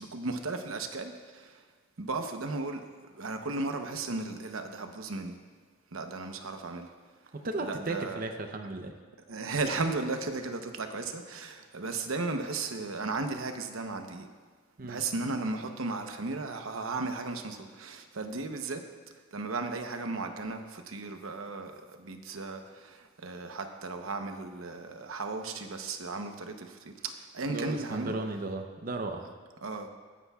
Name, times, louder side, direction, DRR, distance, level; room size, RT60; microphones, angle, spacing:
voice 1, 0.0-1.6 2.0-2.8 3.1-5.4 5.9-6.9 7.6-8.2 9.3-14.3 14.8-18.8 19.3-28.2 29.6-29.9, right 3 dB, 80° right, 6 dB, 0.9 m, -35 dB
voice 2, 7.3-8.9 14.8-15.0 27.5-29.3, right 2 dB, 45° right, 4 dB, 0.7 m, -35 dB
22.0 x 10.0 x 2.4 m, 1.5 s
head